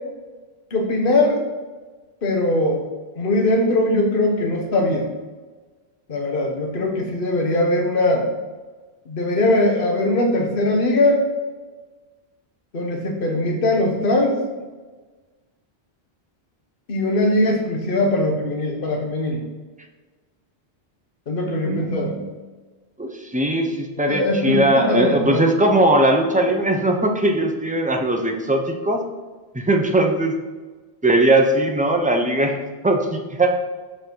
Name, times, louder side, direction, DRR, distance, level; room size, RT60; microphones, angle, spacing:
voice 1, 0.7-1.4 2.2-2.8 3.2-5.1 6.1-8.3 9.1-11.2 12.7-14.4 16.9-19.4 21.3-22.2 24.1-25.4, left 1 dB, 55° left, 1 dB, 1.3 m, -20 dB
voice 2, 21.6-22.3 23.0-29.0 29.5-30.3 31.0-32.6 32.8-33.6, right 1 dB, 10° right, 2 dB, 0.8 m, -19 dB
7.0 x 5.8 x 4.7 m, 1.3 s
omnidirectional pair, 1.1 m